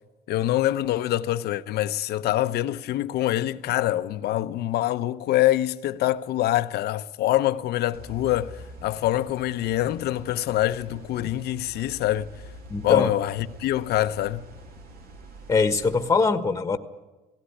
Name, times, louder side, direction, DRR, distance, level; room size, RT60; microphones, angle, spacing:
voice 1, 0.3-12.3 12.8-14.4, left 14 dB, 75° left, 0.8 m, -25 dB
sound 1, 7.9-16.2, right 1 dB, 65° right, 2.7 m, -45 dB
voice 2, 12.7-13.1 15.5-16.8, left 4 dB, 20° left, 1.3 m, -22 dB
17.5 x 16.5 x 9.9 m
cardioid pair, 110°, 17 cm